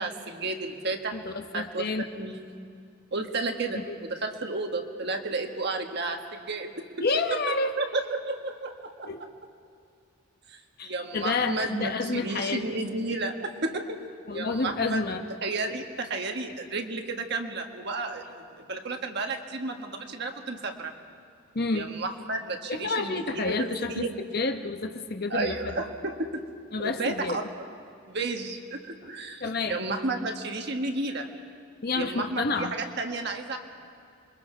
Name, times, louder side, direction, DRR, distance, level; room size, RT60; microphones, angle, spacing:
voice 1, 0.0-1.2 1.5-2.4 3.1-6.7 7.3-7.4 7.8-9.1 10.5-13.9 14.3-15.1 15.4-20.9 21.7-24.2 25.3-26.4 26.8-27.7 28.1-31.3 31.9-33.6, right 2 dB, 50° right, 4 dB, 1.5 m, -32 dB
voice 2, 1.1-2.0 3.7-3.9 7.0-7.8 9.1-9.2 10.8-12.6 14.3-15.2 21.5-21.9 22.7-25.7 26.7-27.4 29.4-29.8 31.8-32.7, left 3 dB, 45° left, 7 dB, 0.9 m, -29 dB
27.5 x 22.5 x 4.6 m, 2.4 s
head